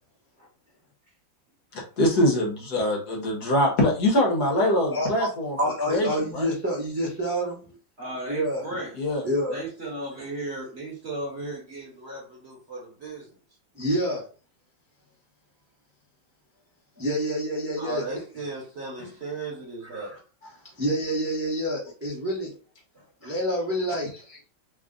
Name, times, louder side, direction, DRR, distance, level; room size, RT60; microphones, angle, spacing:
voice 1, 1.7-5.6 5.9-6.5 9.0-9.2, left 1 dB, 60° left, -1 dB, 1.5 m, -23 dB
voice 2, 4.9-5.3 5.6-7.6 8.3-8.6 9.2-9.7 13.7-14.2 17.0-18.0 19.9-22.5 23.2-24.1, equal, 10° right, -5 dB, 0.7 m, -28 dB
voice 3, 8.0-9.0 9.5-13.3 17.8-20.2 22.9-23.1, right 2 dB, 40° right, -3 dB, 1.2 m, -36 dB
3.5 x 2.3 x 3.8 m, 0.37 s
omnidirectional pair, 2.1 m